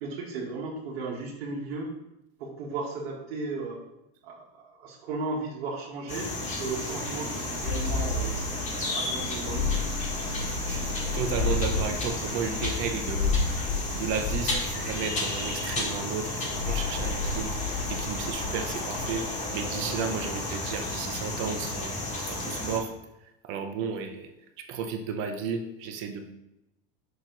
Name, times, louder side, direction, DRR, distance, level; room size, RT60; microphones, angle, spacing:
voice 1, 0.0-1.9 2.4-3.8 4.2-8.3 8.7-9.8, right 3 dB, 75° right, -3 dB, 1.7 m, -35 dB
sound 1, 6.1-22.8, left 3 dB, 25° left, 1.4 m, -30 dB
voice 2, 10.5-13.7 13.9-17.6 17.9-22.9 23.4-24.3 24.6-26.3, right 6 dB, 40° right, 6 dB, 0.7 m, -33 dB
6.4 x 4.5 x 3.9 m, 0.88 s
supercardioid pair, 160°, 32 cm